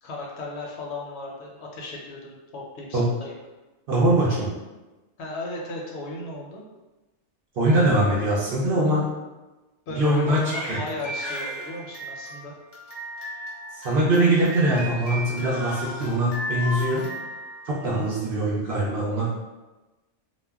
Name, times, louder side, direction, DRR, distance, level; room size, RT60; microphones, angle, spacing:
voice 1, 0.0-3.3 5.2-6.6 9.9-12.5 17.8-18.1, left 2 dB, 70° left, -2 dB, 0.8 m, -36 dB
voice 2, 3.9-4.5 7.6-9.0 10.0-10.4 10.7-10.8 13.8-17.1 17.7-19.3, right 1 dB, 60° right, -6 dB, 0.6 m, -22 dB
Crying sobbing, 10.1-18.2, equal, 20° left, 0.6 m, -35 dB
2.2 x 2.1 x 3.4 m, 1.1 s
omnidirectional pair, 1.3 m